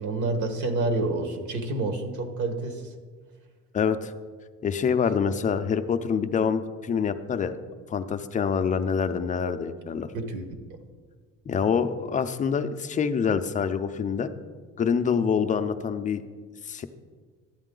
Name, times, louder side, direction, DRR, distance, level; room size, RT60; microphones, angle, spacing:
voice 1, 0.0-2.9 10.1-10.6, right 2 dB, 65° right, 6 dB, 1.4 m, -28 dB
voice 2, 3.7-4.1 4.6-7.6 7.9-10.1 11.5-14.3 14.8-16.2 16.6-16.9, left 6 dB, 25° left, 9 dB, 0.4 m, -26 dB
12.0 x 8.8 x 3.8 m, 1.5 s
cardioid pair, 150°, 31 cm